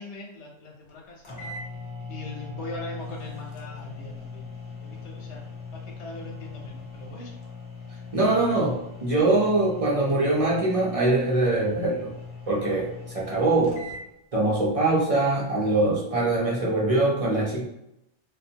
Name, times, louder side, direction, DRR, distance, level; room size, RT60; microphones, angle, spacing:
voice 1, 0.0-1.6 2.1-4.5 4.8-5.4 6.0-7.3, left 2 dB, 75° left, 0 dB, 0.9 m, -40 dB
sound 1, 0.9-1.0 1.2-14.0, left 4 dB, 45° left, 0.4 m, -40 dB
voice 2, 8.1-12.1 12.5-13.8 14.3-17.7, right 2 dB, 45° right, -5 dB, 0.5 m, -23 dB
2.5 x 2.2 x 2.7 m, 0.85 s
omnidirectional pair, 1.2 m